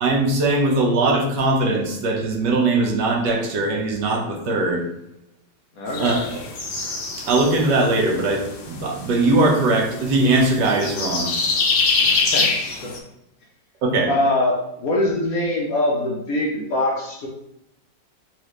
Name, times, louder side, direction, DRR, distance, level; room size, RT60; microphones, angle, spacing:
voice 1, 0.0-4.8 6.0-6.2 7.3-11.3 13.8-14.1, right 2 dB, 75° right, 0 dB, 1.4 m, -20 dB
voice 2, 5.8-6.3 12.0-12.9 14.1-17.3, left 1 dB, 65° left, -2 dB, 1.0 m, -23 dB
sound 1, 5.9-13.0, left 4 dB, 90° left, 1.5 m, -25 dB
4.5 x 2.4 x 3.1 m, 0.84 s
omnidirectional pair, 1.9 m